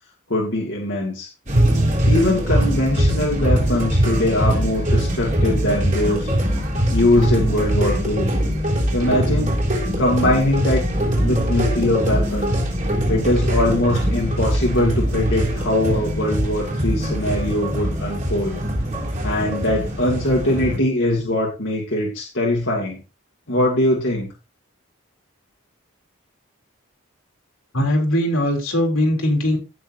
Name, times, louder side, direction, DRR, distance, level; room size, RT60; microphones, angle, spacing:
voice 1, 0.3-1.3 2.1-6.3 6.9-8.3 8.9-9.6 10.0-10.8 11.2-12.6 13.1-18.6 19.2-23.0 23.5-24.3, left 1 dB, 60° left, -2 dB, 2.2 m, -21 dB
sound 1, 1.5-20.8, equal, 35° right, 3.4 m, -22 dB
voice 2, 27.7-29.6, left 1 dB, 80° left, 1 dB, 3.5 m, -20 dB
16.5 x 6.2 x 2.7 m, 0.29 s
head